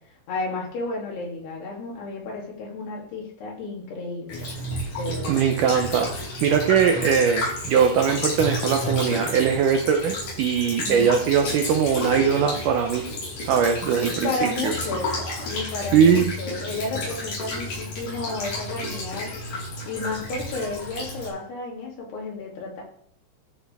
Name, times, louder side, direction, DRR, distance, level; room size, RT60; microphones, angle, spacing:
voice 1, 0.3-4.5 5.0-5.4 10.8-11.2 14.1-19.3 19.9-22.8, left 3 dB, 80° left, -3 dB, 4.9 m, -32 dB
Child speech kid speaking / Bird vocalization bird call bird song / Stream, 4.3-21.3, left 1 dB, 55° left, 5.9 m, -31 dB
voice 2, 5.3-6.1 6.4-13.1 13.4-14.7 15.9-16.3, right 7 dB, 85° right, 4 dB, 1.8 m, -21 dB
13.5 x 7.1 x 3.6 m, 0.63 s
omnidirectional pair, 4.7 m